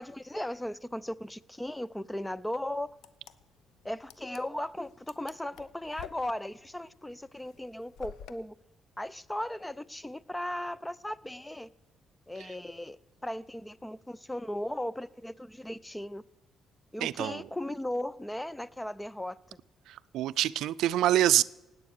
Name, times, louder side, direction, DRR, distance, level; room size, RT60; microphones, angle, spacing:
voice 1, 0.0-2.9 3.8-8.5 9.0-11.7 12.3-16.2 16.9-19.6, left 1 dB, 10° left, 0.5 m, -37 dB
sound 1, 2.9-8.3, left 9 dB, 80° left, 0.8 m, -49 dB
voice 2, 17.0-17.4 19.9-21.4, right 13 dB, 85° right, 0.4 m, -26 dB
17.0 x 9.4 x 6.5 m
cardioid pair, 90°, 0 cm